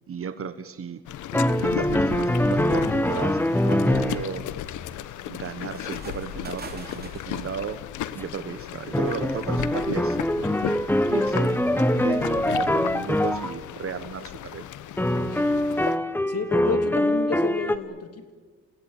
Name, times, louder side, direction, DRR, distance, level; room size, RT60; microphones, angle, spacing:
voice 1, 0.1-1.0 1.6-4.5 5.3-7.8 8.1-10.2 11.1-14.7, right 7 dB, 45° right, 11 dB, 1.3 m, -34 dB
sound 1, 1.1-16.0, left 12 dB, 80° left, 1.0 m, -35 dB
sound 2, 1.3-4.3 8.2-8.3 8.9-13.5 15.0-17.8, left 1 dB, 5° left, 1.2 m, -23 dB
sound 3, 3.9-7.7, right 4 dB, 30° right, 3.3 m, -45 dB
voice 2, 16.3-18.3, left 5 dB, 55° left, 8 dB, 2.7 m, -30 dB
29.5 x 16.5 x 9.0 m, 1.5 s
cardioid pair, 90°, 30 cm